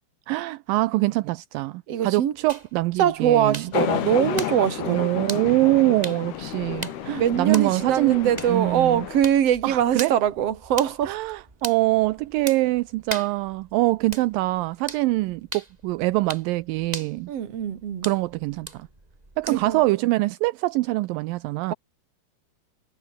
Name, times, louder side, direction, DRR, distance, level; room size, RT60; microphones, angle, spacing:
voice 1, 0.3-3.7 4.9-9.1 9.6-10.2 11.1-17.3 18.0-18.9 19.4-21.7, right 19 dB, 80° right, 2.1 m, -24 dB
voice 2, 1.9-2.3 3.0-5.1 7.2-11.3 17.3-18.1 19.5-19.8, right 10 dB, 45° right, 2.5 m, -23 dB
sound 1, 2.5-19.9, right 2 dB, 10° right, 3.0 m, -41 dB
sound 2, 3.7-9.2, left 10 dB, 80° left, 4.0 m, -31 dB
omnidirectional pair, 4.6 m